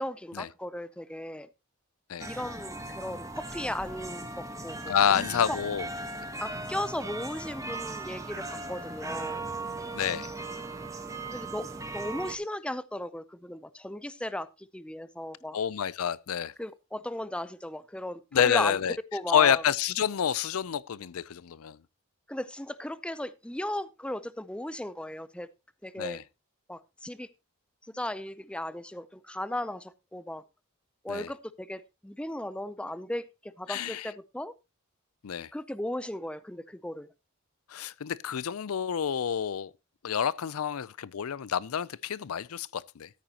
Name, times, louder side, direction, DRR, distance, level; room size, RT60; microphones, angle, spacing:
voice 1, 0.0-1.5 2.2-5.6 6.4-9.4 11.3-15.6 16.6-18.8 19.1-19.6 22.3-25.5 25.8-26.2 26.7-27.3 27.9-30.4 31.0-34.5 35.5-37.1, left 1 dB, 5° left, 0.4 m, -36 dB
sound 1, 2.2-12.4, right 2 dB, 15° right, 1.1 m, -38 dB
voice 2, 4.9-5.9 9.9-10.3 15.5-16.5 18.3-19.0 19.3-21.8 26.0-26.2 31.1-31.3 33.7-34.1 35.2-35.5 37.7-39.7 40.0-43.1, left 8 dB, 80° left, 0.5 m, -28 dB
13.5 x 9.2 x 2.9 m
head